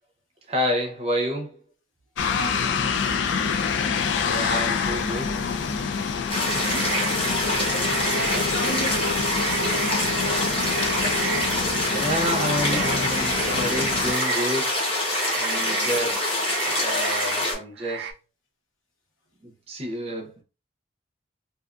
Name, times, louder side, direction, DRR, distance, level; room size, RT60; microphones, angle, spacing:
voice 1, 0.5-1.6 4.2-5.3 8.3-8.4 12.0-14.8 15.4-16.2 16.7-18.1 19.4-20.4, equal, 30° right, 0.6 m, -29 dB
sound 1, 2.2-14.1, left 5 dB, 70° left, 0.3 m, -27 dB
voice 2, 2.3-3.6 4.1-4.4 6.4-6.9 7.9-9.9 15.6-15.9, right 2 dB, 85° left, 1.0 m, -37 dB
sound 2, 6.3-17.5, left 1 dB, 30° left, 0.9 m, -25 dB
sound 3, 6.5-14.7 15.0-18.1, right 7 dB, 65° right, 0.3 m, -34 dB
2.4 x 2.4 x 2.4 m
head